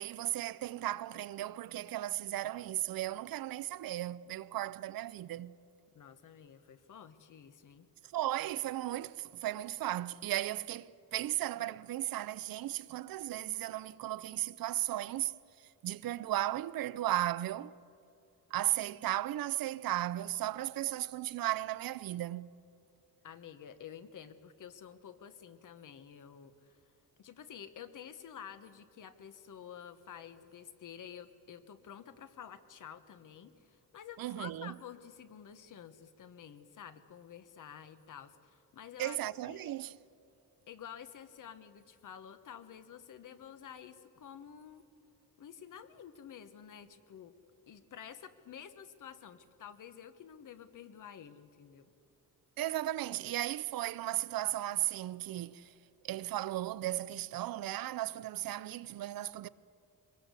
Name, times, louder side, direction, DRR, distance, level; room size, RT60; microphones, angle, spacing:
voice 1, 0.0-5.5 8.1-15.4 15.8-17.7 18.5-22.5 34.2-34.7 39.0-40.0 52.6-55.7 56.0-59.5, right 14 dB, 70° right, 0.7 m, -35 dB
voice 2, 5.9-7.9 23.2-26.8 27.2-39.8 40.7-44.8 45.4-47.3 47.7-51.9, left 8 dB, 60° left, 1.4 m, -50 dB
23.0 x 21.0 x 8.3 m
cardioid pair, 140°, 36 cm